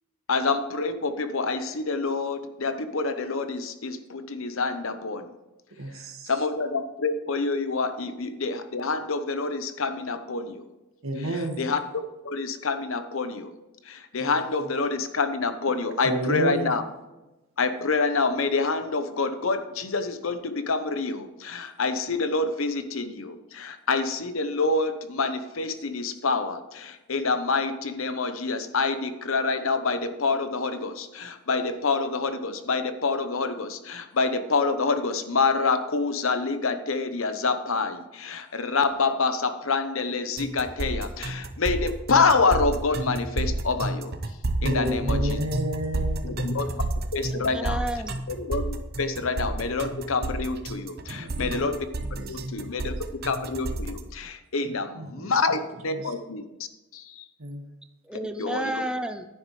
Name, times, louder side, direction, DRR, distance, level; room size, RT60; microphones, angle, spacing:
voice 1, 0.3-5.3 6.3-10.7 11.2-13.5 13.8-16.8 17.6-44.2 44.6-45.4 46.2-46.7 47.1-47.8 48.3-51.8 52.3-52.9 53.2-56.4 56.9-57.2 58.4-58.8, left 4 dB, 75° left, 10 dB, 0.9 m, -27 dB
voice 2, 5.8-6.3 11.0-11.6 16.0-16.7 44.6-46.4 51.1-51.5 52.1-52.7 55.0-55.3 55.9-56.1 57.4-57.6, right 1 dB, 80° right, 3 dB, 1.8 m, -30 dB
sound 1, 40.4-54.0, right 2 dB, 45° right, 0.8 m, -30 dB
voice 3, 47.3-48.2 58.1-59.3, right 1 dB, 5° right, 7 dB, 0.4 m, -31 dB
11.0 x 9.7 x 3.3 m, 1.1 s
head